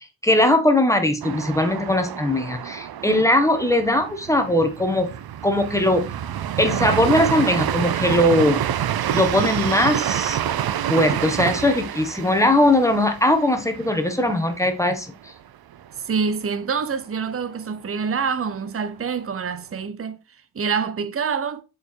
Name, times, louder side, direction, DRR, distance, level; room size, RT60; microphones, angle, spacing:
voice 1, 0.2-5.1 5.4-6.0 6.6-8.7 9.1-10.4 10.8-15.3, left 1 dB, 10° left, 1.4 m, -20 dB
sound 1, 1.2-14.9 15.3-15.4 15.7-16.3, right 10 dB, 80° right, 0.6 m, -28 dB
voice 2, 16.0-20.2 20.5-21.6, right 6 dB, 40° right, 0.8 m, -26 dB
6.7 x 5.0 x 4.5 m
wide cardioid pair, 95°, 36 cm